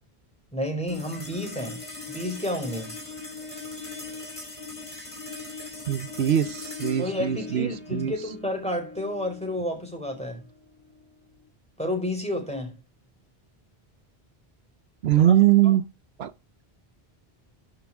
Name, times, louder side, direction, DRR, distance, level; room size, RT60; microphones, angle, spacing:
voice 1, 0.5-3.0 7.0-10.4 11.8-12.7 15.2-15.3 15.6-15.7, left 1 dB, 5° left, 4.9 m, -31 dB
sound 1, 0.9-11.5, left 3 dB, 30° left, 3.0 m, -40 dB
voice 2, 5.9-8.1 15.0-15.8 16.2-16.3, right 11 dB, 80° right, 1.0 m, -22 dB
11.5 x 8.0 x 3.6 m
omnidirectional pair, 1.1 m